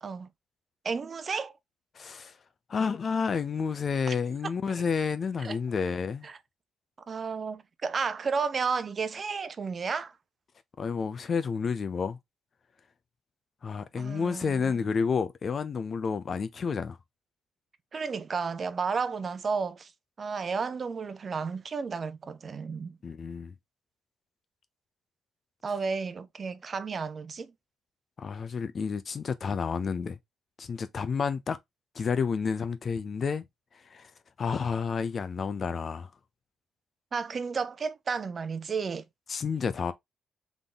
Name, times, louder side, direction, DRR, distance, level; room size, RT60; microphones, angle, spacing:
voice 1, 0.8-1.5 4.1-4.2 4.7-4.8 5.4-5.6 6.2-6.3 7.1-10.1 14.0-14.6 17.9-19.9 20.2-23.0 25.6-27.5 37.1-39.0, right 5 dB, 40° right, 0.6 m, -32 dB
voice 2, 1.9-2.4 2.7-6.3 10.8-12.2 13.6-17.0 23.0-23.6 28.2-30.2 30.6-31.6 31.9-33.5 33.7-36.1 39.3-39.9, left 5 dB, 45° left, 0.7 m, -30 dB
3.7 x 3.6 x 3.9 m
cardioid pair, 90°, 0 cm